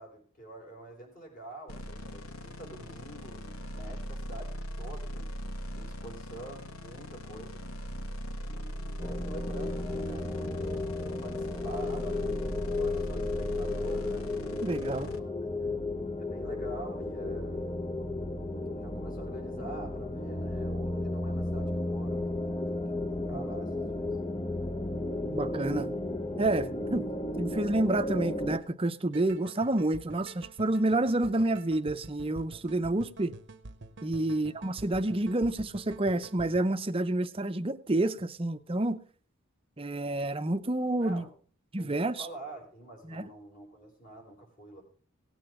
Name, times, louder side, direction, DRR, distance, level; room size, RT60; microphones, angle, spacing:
voice 1, 0.0-5.3 5.7-7.6 8.4-12.4 12.7-14.3 15.1-15.8 16.2-17.8 18.8-22.9 23.3-24.0 34.2-34.3 41.0-41.3 41.8-44.8, right 2 dB, 40° left, 4.4 m, -47 dB
sound 1, 1.7-15.2, equal, 90° left, 1.2 m, -40 dB
sound 2, 9.0-28.6, left 2 dB, 20° left, 0.7 m, -34 dB
voice 2, 14.6-15.1 23.3-23.4 25.3-25.9 26.4-27.0 27.4-33.3 34.0-39.0 39.8-41.2 41.7-42.3 43.0-43.3, right 2 dB, 25° right, 0.7 m, -29 dB
sound 3, 29.1-36.6, right 2 dB, 55° right, 0.9 m, -48 dB
18.0 x 8.8 x 3.7 m
head